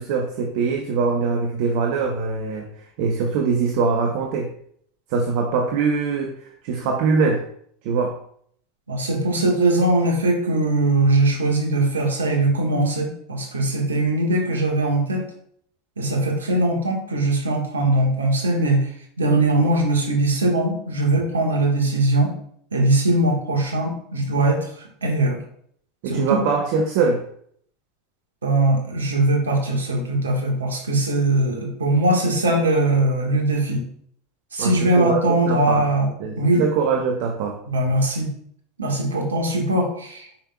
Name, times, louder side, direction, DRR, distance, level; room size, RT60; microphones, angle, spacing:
voice 1, 0.0-2.7 3.0-4.5 5.1-7.4 7.8-8.2 26.0-27.2 34.6-35.9 36.2-37.6, right 5 dB, 65° right, 2 dB, 1.0 m, -22 dB
voice 2, 8.9-15.2 16.0-18.9 19.2-22.3 22.7-25.4 26.1-26.4 28.4-33.8 34.5-36.1 36.4-36.6 37.7-38.3 38.8-40.3, right 2 dB, 90° right, 1 dB, 1.7 m, -21 dB
8.8 x 5.6 x 2.4 m, 0.64 s
hypercardioid pair, 85°, 0 cm